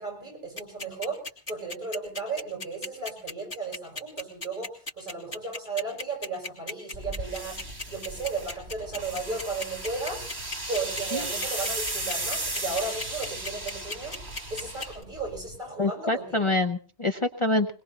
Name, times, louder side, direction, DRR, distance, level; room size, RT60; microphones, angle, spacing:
voice 1, 0.0-7.6 7.9-10.2 10.7-14.2 14.5-16.5, right 3 dB, 50° right, 1 dB, 7.4 m, -35 dB
sound 1, 0.6-15.0, left 3 dB, 90° left, 3.2 m, -35 dB
sound 2, 6.9-15.6, right 2 dB, 75° right, 3.5 m, -35 dB
voice 2, 15.8-17.7, left 2 dB, 30° left, 5 dB, 0.8 m, -26 dB
22.0 x 21.5 x 2.9 m, 0.39 s
omnidirectional pair, 1.1 m